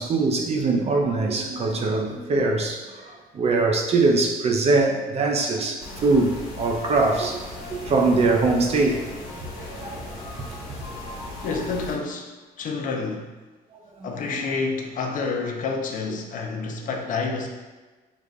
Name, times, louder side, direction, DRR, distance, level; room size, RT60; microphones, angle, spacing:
voice 1, 0.0-7.4 7.7-9.1 9.4-9.5 9.8-10.5 14.0-14.1, right 3 dB, 40° right, 2 dB, 0.6 m, -22 dB
sound 1, 5.8-12.0, left 1 dB, 75° left, 1.3 m, -37 dB
voice 2, 11.4-13.3 14.0-17.5, left 4 dB, 50° left, 2 dB, 0.6 m, -29 dB
6.5 x 2.4 x 2.3 m, 1.2 s
cardioid pair, 110°, 17 cm